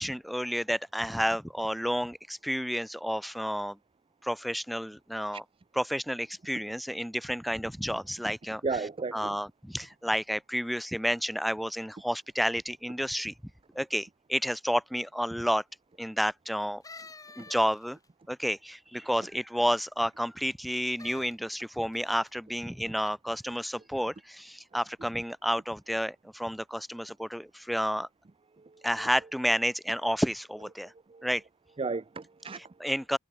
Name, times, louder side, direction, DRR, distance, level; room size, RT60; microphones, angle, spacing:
voice 1, 0.0-3.8 4.2-5.4 5.8-8.6 9.1-13.3 13.7-15.6 16.0-16.8 17.4-18.0 18.3-28.1 28.8-30.9 31.2-31.4 32.8-33.2, equal, ahead, 1.1 m, -30 dB
voice 2, 8.6-9.4 28.6-28.9 31.1-31.3 31.8-32.7, right 4 dB, 25° right, 0.5 m, -34 dB
sound 1, 16.8-18.1 20.9-21.3 21.9-22.3 23.0-23.1, left 3 dB, 15° left, 2.1 m, -48 dB
head